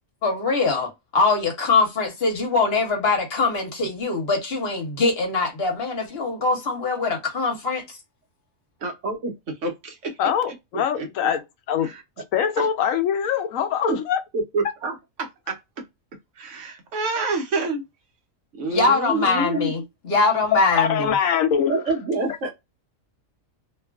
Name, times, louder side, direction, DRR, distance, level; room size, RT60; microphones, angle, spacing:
voice 1, 0.2-8.0 18.7-21.1, left 3 dB, 50° left, 1.1 m, -22 dB
voice 2, 8.8-9.3 9.6-10.1 10.5-11.1 11.8-12.0 12.6-12.7 13.9-14.0 14.5-15.6 16.4-17.8 18.6-19.7 21.7-22.5, right 3 dB, 65° right, 1.2 m, -27 dB
voice 3, 10.2-11.4 11.7-11.9 12.3-14.2 20.5-21.8, left 8 dB, 80° left, 1.0 m, -23 dB
2.9 x 2.4 x 2.2 m
omnidirectional pair, 1.4 m